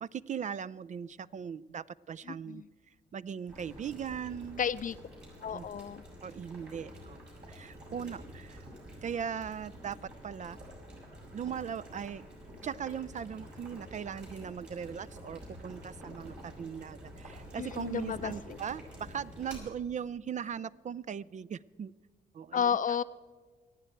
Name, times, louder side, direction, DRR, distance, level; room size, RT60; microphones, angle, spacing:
voice 1, 0.0-2.6 3.1-4.6 5.5-5.7 6.2-7.2 7.5-8.6 9.0-10.6 11.3-12.2 12.6-21.9 22.3-22.8, right 7 dB, 40° right, 17 dB, 0.4 m, -39 dB
voice 2, 2.3-2.7 4.6-5.0 5.4-6.0 17.6-18.6 22.5-23.0, left 8 dB, 45° left, 15 dB, 0.5 m, -32 dB
Boiling, 3.5-19.6, equal, 65° right, 5.7 m, -48 dB
26.5 x 9.0 x 4.5 m, 1.5 s
supercardioid pair, 60°, 19 cm